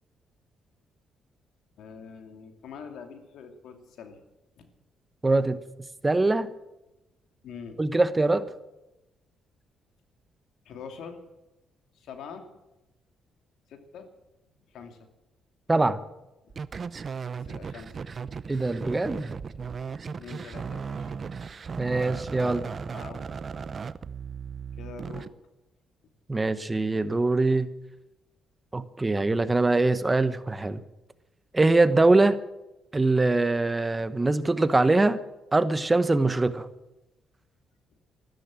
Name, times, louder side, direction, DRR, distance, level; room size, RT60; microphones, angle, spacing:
voice 1, 1.8-4.2 4.6-4.7 7.4-7.8 10.6-11.2 11.9-12.5 13.7-14.1 14.7-15.0 16.4-16.6 17.5-18.0 20.2-21.1 22.9-23.2 24.8-25.3, left 6 dB, 75° left, 6 dB, 2.7 m, -44 dB
voice 2, 5.2-5.6 6.0-6.5 7.8-8.5 15.7-16.0 18.5-19.3 21.7-22.7 26.3-27.7 28.7-30.8 31.5-32.4 32.9-35.2 35.5-36.7, right 2 dB, 20° right, 13 dB, 1.0 m, -23 dB
sound 1, 16.5-25.3, right 5 dB, 40° right, 0.7 m, -36 dB
13.5 x 13.5 x 7.6 m, 0.96 s
cardioid pair, 90°, 0 cm